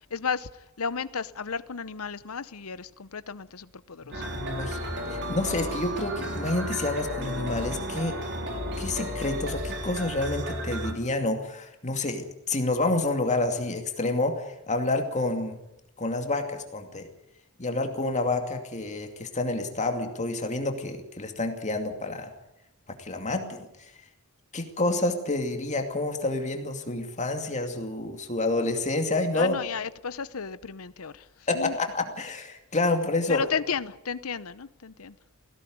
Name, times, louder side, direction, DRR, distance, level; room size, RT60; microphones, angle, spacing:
voice 1, 0.1-0.5 0.8-4.2 29.3-31.3 31.5-31.7 33.3-35.1, left 6 dB, 80° left, 0.8 m, -33 dB
sound 1, 4.1-10.9, equal, 55° right, 4.0 m, -33 dB
voice 2, 4.4-4.8 5.1-8.2 8.8-12.2 12.5-15.6 16.0-17.0 17.6-22.3 23.0-23.7 24.5-29.6 31.5-33.4, left 2 dB, 35° left, 2.5 m, -28 dB
19.5 x 17.0 x 9.4 m
head